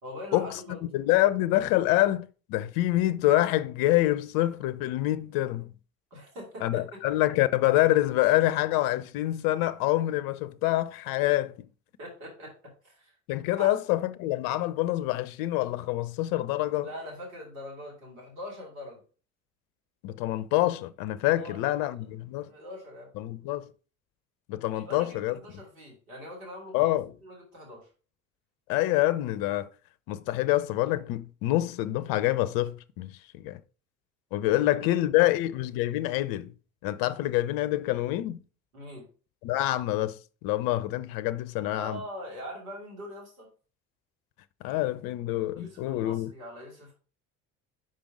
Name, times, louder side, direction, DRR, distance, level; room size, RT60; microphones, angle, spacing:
voice 1, 0.0-0.8 6.1-7.0 12.0-13.1 13.6-13.7 16.8-19.0 21.2-22.0 22.5-23.1 24.7-26.9 27.2-27.9 34.5-34.6 35.0-35.3 38.7-39.1 41.7-43.5 45.6-46.9, equal, 80° right, 2.9 m, -42 dB
voice 2, 0.9-5.7 6.6-11.6 13.3-16.9 20.0-22.5 23.2-23.7 24.5-25.4 26.7-27.1 28.7-29.7 30.1-33.6 34.3-36.5 36.8-38.4 39.4-42.0 44.6-46.3, left 15 dB, 55° left, 0.6 m, -26 dB
5.4 x 5.2 x 4.9 m
hypercardioid pair, 60°, 41 cm